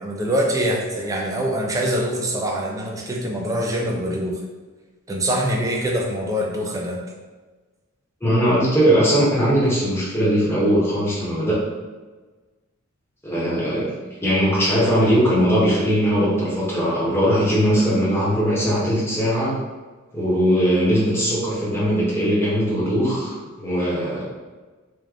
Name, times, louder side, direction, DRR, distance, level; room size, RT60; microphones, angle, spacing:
voice 1, 0.0-4.4 5.1-7.0, equal, 15° right, -1 dB, 0.5 m, -24 dB
voice 2, 8.2-11.6 13.2-13.9 14.2-19.5 20.1-24.2, equal, 10° left, -8 dB, 1.1 m, -20 dB
3.3 x 2.5 x 3.6 m, 1.3 s
head